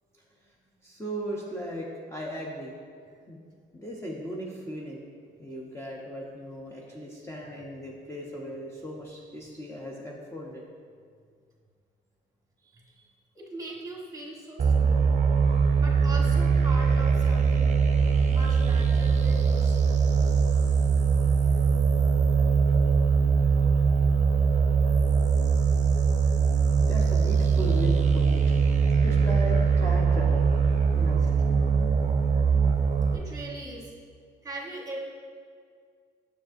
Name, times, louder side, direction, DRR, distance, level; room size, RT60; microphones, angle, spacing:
voice 1, 0.8-2.7 3.3-3.4 3.7-5.0 5.4-10.6 26.8-28.6 29.0-30.5 30.9-31.4, equal, 15° left, -3 dB, 0.8 m, -37 dB
voice 2, 12.6-13.1 13.3-15.2 15.8-17.8 18.3-19.9 27.4-27.8 33.1-33.9 34.4-35.0, right 2 dB, 15° right, -2 dB, 1.3 m, -40 dB
sound 1, 14.6-33.2, right 5 dB, 35° right, 0.7 m, -22 dB
7.2 x 6.6 x 2.6 m, 2.1 s
cardioid pair, 90°, 20 cm